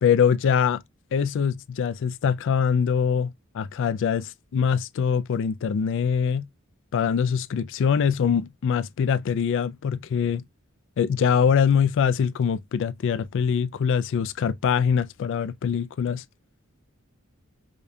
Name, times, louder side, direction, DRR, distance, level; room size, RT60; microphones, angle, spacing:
voice 1, 0.0-0.8 1.1-6.5 6.9-10.4 11.0-16.2, left 7 dB, 60° left, 0.3 m, -23 dB
5.0 x 2.3 x 2.6 m
head